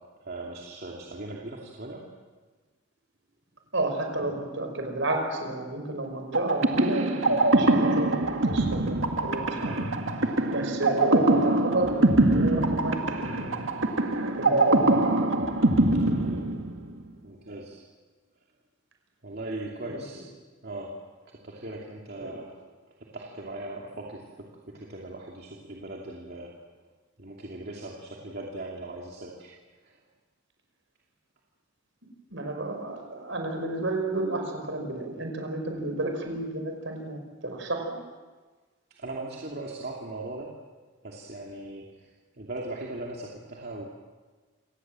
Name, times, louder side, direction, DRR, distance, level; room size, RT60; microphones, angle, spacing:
voice 1, 0.2-2.1 9.6-9.9 16.1-16.5 17.2-17.8 19.2-20.3 20.6-21.0 21.3-22.5 23.0-26.6 27.2-29.6 29.8-30.0 38.9-40.6 41.0-43.8, right 2 dB, 50° right, -2 dB, 2.8 m, -39 dB
voice 2, 3.7-9.0 9.2-9.9 10.2-13.7 14.3-15.1 19.8-20.0 22.2-22.3 32.3-37.9, right 2 dB, 70° right, 4 dB, 5.4 m, -31 dB
sound 1, 6.3-17.0, right 2 dB, 85° right, 2.0 m, -23 dB
28.0 x 18.5 x 7.7 m, 1.3 s
head